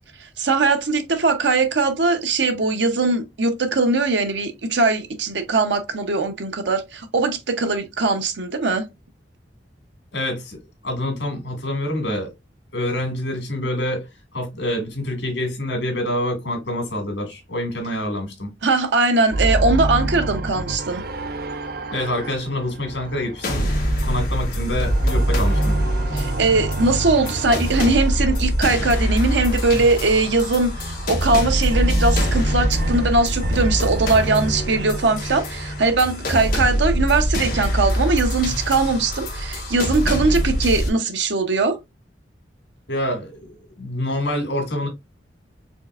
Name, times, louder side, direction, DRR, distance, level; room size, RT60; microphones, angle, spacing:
voice 1, 0.4-8.8 18.6-21.0 26.1-41.8, right 3 dB, 85° right, 0.8 m, -20 dB
voice 2, 10.1-10.6 10.8-12.3 12.7-14.1 14.3-18.5 21.9-23.7 24.0-25.7 42.9-43.5 43.8-44.9, left 1 dB, 85° left, 1.9 m, -26 dB
sound 1, 19.3-24.3 24.6-29.9 30.7-36.7, right 1 dB, 60° right, 0.5 m, -27 dB
sound 2, 23.4-40.9, equal, 55° left, 1.3 m, -24 dB
4.5 x 3.2 x 2.4 m
head